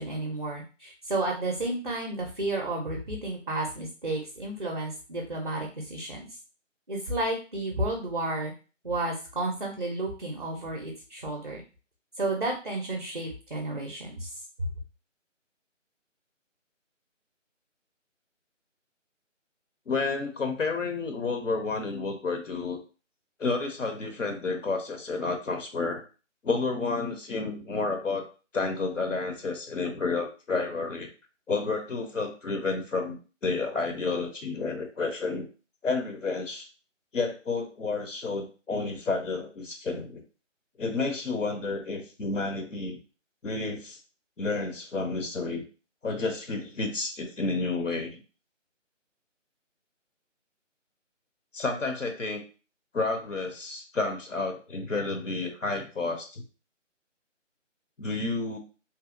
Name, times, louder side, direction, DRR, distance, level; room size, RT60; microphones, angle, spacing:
voice 1, 0.0-6.3 6.9-8.5 8.8-11.6 12.2-14.3, right 2 dB, 40° right, 0 dB, 0.4 m, -32 dB
voice 2, 19.9-22.8 23.4-26.0 26.4-28.3 28.5-31.1 31.5-35.5 35.8-36.7 37.1-40.2 40.8-43.0 43.4-44.0 44.4-45.6 46.0-48.2 51.5-52.4 52.9-56.4 58.0-58.6, left 3 dB, 75° left, 5 dB, 0.7 m, -30 dB
2.7 x 2.1 x 2.4 m, 0.35 s
figure-of-eight pair, 155°, 38 cm